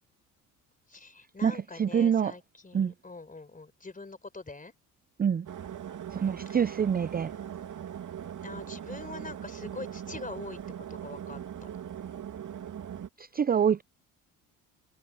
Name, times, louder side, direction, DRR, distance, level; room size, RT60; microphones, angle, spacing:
voice 1, 0.9-4.7 6.5-6.6 8.4-10.6 10.9-11.7, left 3 dB, 20° left, 4.2 m, -44 dB
voice 2, 1.4-2.4 2.7-2.9 5.2-5.5 6.1-7.3 13.2-13.8, right 7 dB, 20° right, 0.6 m, -26 dB
sound 1, 5.5-13.1, right 9 dB, 45° right, 2.8 m, -40 dB
hypercardioid pair, 60°, 42 cm